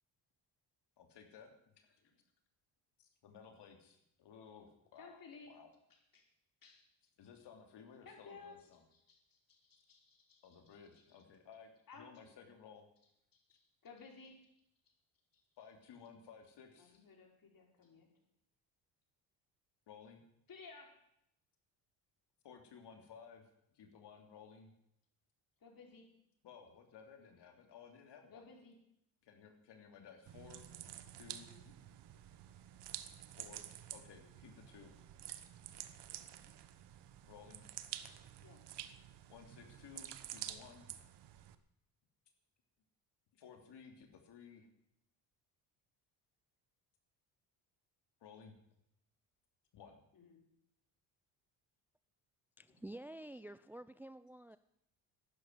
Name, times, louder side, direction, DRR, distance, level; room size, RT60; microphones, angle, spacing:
voice 1, 1.0-2.0 3.0-5.2 5.5-5.7 7.2-8.8 10.4-11.7 12.0-12.9 13.5-13.6 15.6-17.0 19.9-20.2 22.4-24.7 26.4-28.4 29.2-30.7 31.2-31.5 33.4-33.6 33.9-34.9 37.3-37.6 39.3-40.9 43.3-44.7 48.2-48.5 49.7-50.0, left 6 dB, 65° left, 4 dB, 3.0 m, -57 dB
voice 2, 5.0-5.6 5.9-6.3 6.6-6.9 8.0-8.6 8.9-11.0 11.9-12.2 13.3-13.4 13.8-14.5 14.9-15.0 15.3-15.4 16.8-18.1 20.5-21.0 25.6-26.1 28.3-28.8 31.5-31.7 36.1-36.6 38.4-38.6 50.1-50.4 52.7-52.8, left 4 dB, 50° left, 1 dB, 5.1 m, -57 dB
sound 1, 30.3-41.5, right 11 dB, 65° right, 1.3 m, -50 dB
voice 3, 52.6-54.6, right 1 dB, 5° right, 14 dB, 0.5 m, -49 dB
12.0 x 10.5 x 9.5 m, 0.77 s
supercardioid pair, 70°, 44 cm